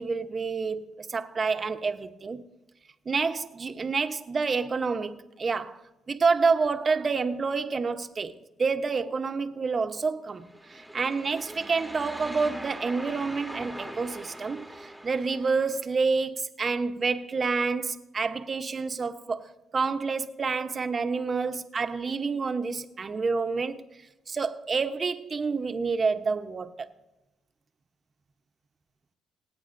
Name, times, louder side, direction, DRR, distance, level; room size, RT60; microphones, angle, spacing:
voice 1, 0.0-2.4 3.1-5.8 6.1-19.5 19.7-23.8 24.3-26.7, right 4 dB, 40° right, 0.9 m, -28 dB
sound 1, 10.4-15.8, equal, ahead, 1.2 m, -42 dB
27.0 x 9.1 x 2.6 m
cardioid pair, 90°, 0 cm